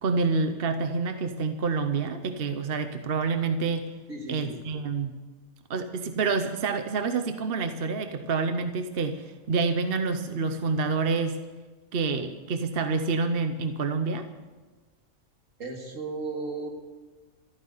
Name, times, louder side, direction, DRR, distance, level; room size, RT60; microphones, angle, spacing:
voice 1, 0.0-3.9 4.3-5.1 5.7-11.4 11.9-14.3, right 4 dB, 50° right, 8 dB, 1.0 m, -27 dB
voice 2, 4.1-4.7 15.6-16.7, right 3 dB, 65° right, 1 dB, 2.7 m, -35 dB
14.5 x 9.3 x 9.4 m, 1.3 s
omnidirectional pair, 1.4 m